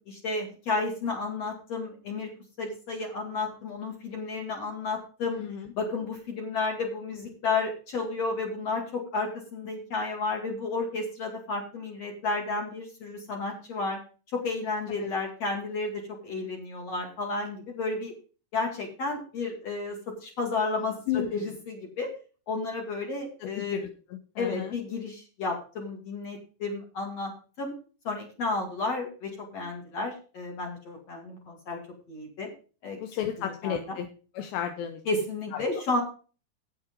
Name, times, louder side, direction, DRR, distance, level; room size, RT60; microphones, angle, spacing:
voice 1, 0.0-2.3 2.6-5.4 5.7-14.0 14.3-18.1 18.5-22.1 22.5-23.8 24.4-27.3 27.6-27.7 28.0-31.8 32.1-32.5 32.8-33.0 33.4-33.8 35.1-36.0, left 3 dB, 45° left, 1 dB, 2.5 m, -32 dB
voice 2, 5.3-5.7 15.0-15.1 21.1-21.5 23.4-24.8 33.0-34.1 34.3-35.0 35.5-35.6, left 10 dB, 80° left, 6 dB, 2.9 m, -33 dB
9.5 x 9.0 x 5.3 m, 0.37 s
omnidirectional pair, 5.4 m